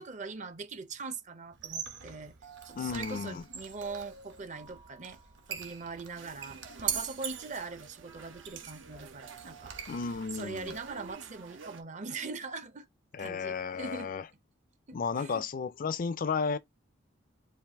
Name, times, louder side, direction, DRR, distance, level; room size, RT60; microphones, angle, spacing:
voice 1, 0.0-2.4 2.6-5.2 5.5-9.8 10.3-12.9 13.2-14.1 14.9-15.4, right 4 dB, 40° right, 0.6 m, -42 dB
Squeak, 1.5-11.1, right 7 dB, 70° right, 1.0 m, -42 dB
voice 2, 2.7-3.5 9.9-10.7 13.1-14.2 14.9-16.6, left 5 dB, 45° left, 0.4 m, -33 dB
sound 1, 6.2-11.8, right 5 dB, 90° right, 0.7 m, -51 dB
4.5 x 2.5 x 3.4 m
head